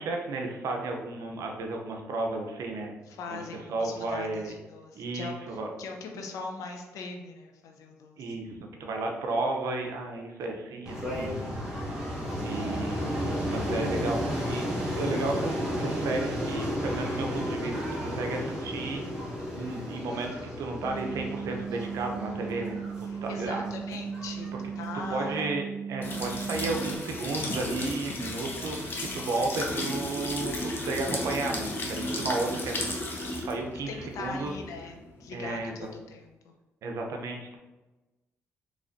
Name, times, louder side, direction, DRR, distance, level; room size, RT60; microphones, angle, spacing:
voice 1, 0.0-2.9 3.3-3.4 3.7-4.5 5.0-5.7 8.2-11.5 11.7-11.8 12.4-14.6 15.0-19.0 19.5-22.8 23.2-23.7 25.1-33.1 33.4-34.5 35.3-35.9 36.8-37.6, right 3 dB, 80° right, 2 dB, 0.6 m, -33 dB
voice 2, 3.1-8.3 23.1-25.3 33.9-36.5, left 4 dB, 85° left, 3 dB, 0.6 m, -41 dB
sound 1, 10.8-25.5, equal, 10° right, 1.3 m, -33 dB
sound 2, 20.8-27.0, right 6 dB, 10° left, 0.8 m, -37 dB
sound 3, 26.0-35.7, left 1 dB, 40° left, 0.8 m, -34 dB
4.0 x 3.2 x 2.6 m, 1.1 s
cardioid pair, 85°, 5 cm